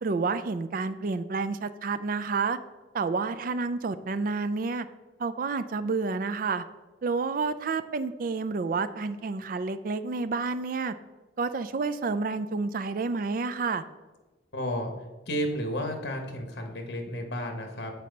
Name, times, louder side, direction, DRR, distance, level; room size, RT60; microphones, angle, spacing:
voice 1, 0.0-2.6 2.9-4.9 5.2-6.6 7.0-10.9 11.4-13.8, right 4 dB, 50° right, 11 dB, 0.4 m, -29 dB
voice 2, 14.5-14.9 15.3-17.9, equal, 65° left, 4 dB, 1.2 m, -32 dB
7.6 x 4.2 x 5.2 m, 1.2 s
head